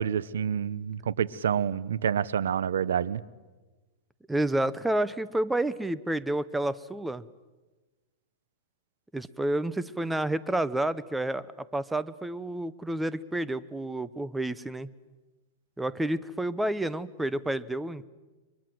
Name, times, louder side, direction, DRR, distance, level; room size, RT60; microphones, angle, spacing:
voice 1, 0.0-3.2, right 8 dB, 90° right, 19 dB, 1.0 m, -28 dB
voice 2, 4.3-7.2 9.1-11.5 11.7-14.9 15.8-18.1, right 1 dB, 5° right, 16 dB, 0.8 m, -29 dB
30.0 x 24.0 x 7.8 m, 1.2 s
supercardioid pair, 145°, 0 cm